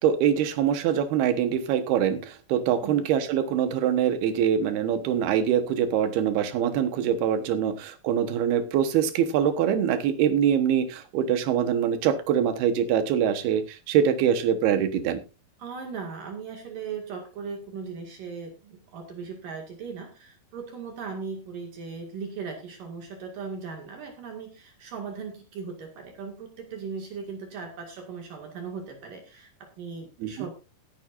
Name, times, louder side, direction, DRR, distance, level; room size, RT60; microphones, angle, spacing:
voice 1, 0.0-15.2 30.2-30.3, right 9 dB, 80° right, 10 dB, 3.2 m, -24 dB
voice 2, 15.6-30.5, right 5 dB, 60° right, 3 dB, 3.5 m, -38 dB
18.5 x 9.4 x 2.5 m, 0.30 s
omnidirectional pair, 4.5 m